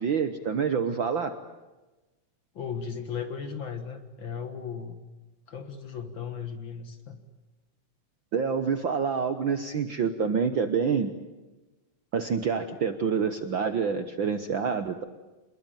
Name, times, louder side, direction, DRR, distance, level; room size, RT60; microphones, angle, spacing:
voice 1, 0.0-1.3 8.3-11.1 12.1-15.0, right 6 dB, 55° right, 9 dB, 1.4 m, -27 dB
voice 2, 2.6-5.0 5.5-7.2, left 6 dB, 45° left, 8 dB, 2.1 m, -36 dB
26.5 x 21.5 x 9.1 m, 1.1 s
omnidirectional pair, 3.4 m